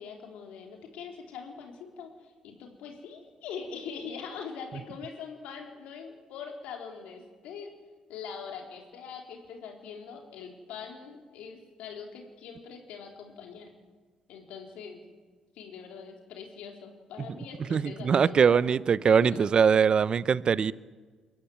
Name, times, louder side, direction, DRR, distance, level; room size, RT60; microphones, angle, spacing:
voice 1, 0.0-7.7 8.1-13.7 14.3-15.0 15.5-18.7 19.2-19.5, left 6 dB, 80° left, 2 dB, 3.9 m, -42 dB
voice 2, 17.7-20.7, right 6 dB, 50° right, 19 dB, 0.7 m, -22 dB
23.0 x 12.5 x 9.4 m, 1.5 s
supercardioid pair, 65°, 2 cm